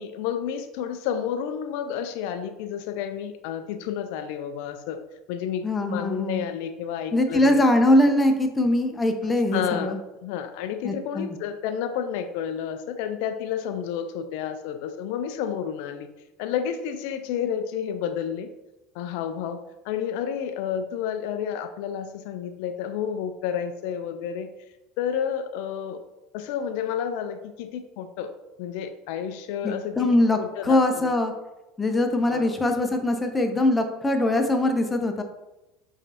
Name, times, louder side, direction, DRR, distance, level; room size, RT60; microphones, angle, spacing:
voice 1, 0.0-5.0 5.3-5.7 5.9-7.6 9.2-16.1 16.4-18.5 18.9-24.5 25.0-26.0 26.3-28.3 28.6-30.1 30.4-31.1 32.3-32.6, left 8 dB, 65° left, 8 dB, 0.3 m, -30 dB
voice 2, 5.6-6.5 7.1-10.0 10.8-11.3 29.6-31.3 31.8-35.2, left 1 dB, 15° left, 5 dB, 0.7 m, -22 dB
5.0 x 3.2 x 2.8 m, 0.99 s
hypercardioid pair, 70°, 0 cm